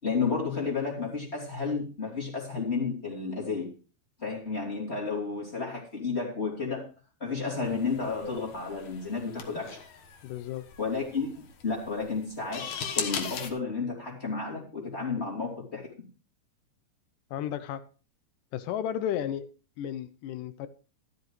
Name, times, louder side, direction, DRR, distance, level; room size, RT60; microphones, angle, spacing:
voice 1, 0.0-3.7 4.2-6.9 7.2-9.8 10.8-12.7 12.9-15.9, left 4 dB, 20° left, 2.8 m, -32 dB
sound 1, 7.6-13.5, left 7 dB, 60° left, 2.2 m, -38 dB
voice 2, 10.2-10.7 17.3-17.9 18.5-19.5 19.8-20.7, left 10 dB, 80° left, 1.9 m, -33 dB
13.5 x 13.0 x 3.1 m
omnidirectional pair, 4.6 m